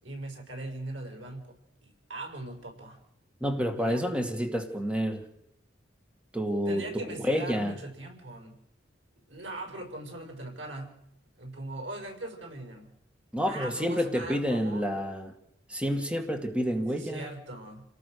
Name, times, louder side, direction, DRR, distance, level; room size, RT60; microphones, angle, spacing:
voice 1, 0.0-1.6 1.8-3.0 3.8-4.0 6.7-8.6 9.3-10.9 11.4-12.9 13.4-14.8 16.9-17.8, right 2 dB, 85° right, 4 dB, 6.2 m, -40 dB
voice 2, 3.4-5.2 6.3-7.7 13.3-15.3 15.7-17.3, equal, 5° right, 5 dB, 2.1 m, -29 dB
30.0 x 19.0 x 6.7 m, 0.80 s
head